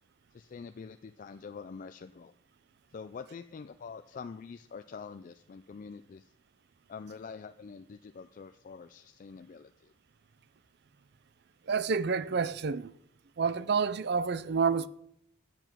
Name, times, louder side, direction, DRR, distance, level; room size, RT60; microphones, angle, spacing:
voice 1, 0.3-2.3 2.9-6.3 6.9-9.9, left 5 dB, 40° left, 0.3 m, -45 dB
voice 2, 11.7-12.9 13.4-14.9, right 5 dB, 55° right, 0.4 m, -29 dB
9.0 x 7.8 x 6.1 m
head